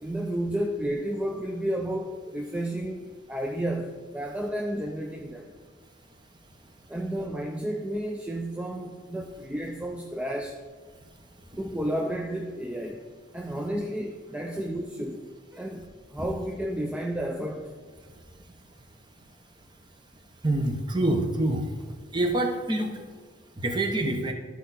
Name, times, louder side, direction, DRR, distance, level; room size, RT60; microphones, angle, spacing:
voice 1, 0.0-5.5 6.9-10.6 11.6-13.1 13.3-15.2 15.5-17.7, right 1 dB, 5° right, 2 dB, 0.4 m, -32 dB
voice 2, 20.4-21.6 22.1-22.9 23.6-24.3, right 1 dB, 25° right, 4 dB, 0.9 m, -26 dB
12.5 x 4.5 x 4.1 m, 1.5 s
head